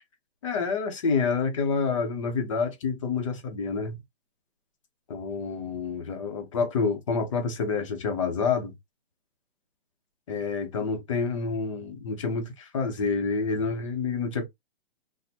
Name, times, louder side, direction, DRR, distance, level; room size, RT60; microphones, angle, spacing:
voice 1, 0.4-4.0 5.1-8.7 10.3-14.5, left 5 dB, 30° left, 0.6 m, -28 dB
4.1 x 2.1 x 2.7 m
hypercardioid pair, 170°, 32 cm